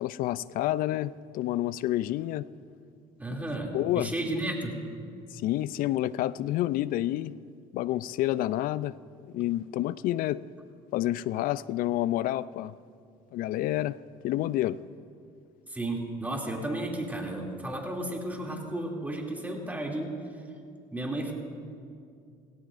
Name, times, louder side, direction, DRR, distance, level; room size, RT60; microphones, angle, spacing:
voice 1, 0.0-2.5 3.7-4.1 5.3-7.3 7.7-8.9 9.2-10.4 10.9-12.7 13.3-14.0 14.2-14.8, left 14 dB, 65° left, 19 dB, 0.4 m, -29 dB
voice 2, 3.2-4.7 15.7-20.1 20.9-21.3, right 1 dB, 10° right, -1 dB, 2.7 m, -33 dB
18.0 x 17.0 x 2.6 m, 2.3 s
supercardioid pair, 85°, 15 cm